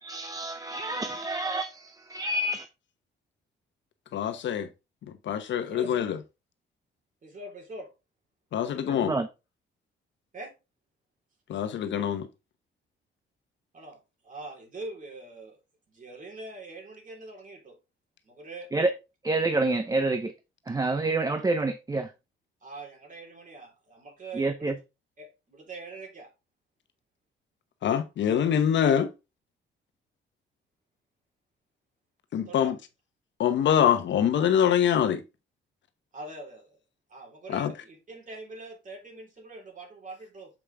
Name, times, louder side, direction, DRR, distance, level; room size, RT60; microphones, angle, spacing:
voice 1, 0.0-1.6 2.1-2.6 9.1-9.3 18.7-18.9 19.2-20.2 20.7-22.0 24.4-24.7, right 2 dB, 20° right, 0.7 m, -27 dB
voice 2, 4.1-4.7 5.3-6.2 8.5-9.1 11.5-12.3 27.8-29.1 32.3-32.7 33.4-35.2 37.5-37.7, left 9 dB, 65° left, 0.9 m, -24 dB
voice 3, 5.5-5.9 7.2-7.9 10.3-10.5 13.7-14.0 14.2-15.6 15.9-17.8 18.3-18.7 22.6-24.7 25.2-26.3 32.4-32.8 36.1-36.8 37.1-40.5, right 2 dB, 40° right, 3.7 m, -43 dB
7.4 x 4.9 x 3.4 m
cardioid pair, 90°, 20 cm